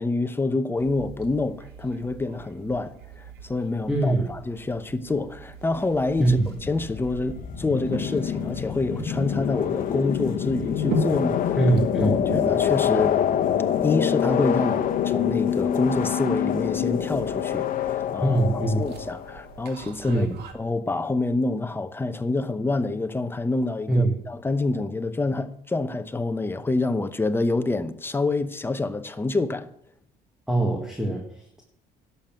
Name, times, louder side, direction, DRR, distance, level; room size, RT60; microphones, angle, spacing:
voice 1, 0.0-11.6 12.0-13.2 13.8-18.4 18.8-20.3 20.5-29.7, left 3 dB, 15° left, 0.8 m, -27 dB
sound 1, 0.8-20.5, right 4 dB, 75° right, 1.9 m, -40 dB
voice 2, 3.9-4.3 6.2-6.5 11.6-12.2 18.2-18.8 20.1-20.4 23.9-24.1 30.5-31.6, right 2 dB, 5° right, 1.8 m, -22 dB
sound 2, 6.1-19.5, left 9 dB, 55° left, 1.0 m, -26 dB
11.5 x 6.9 x 7.4 m
cardioid pair, 110°, 17 cm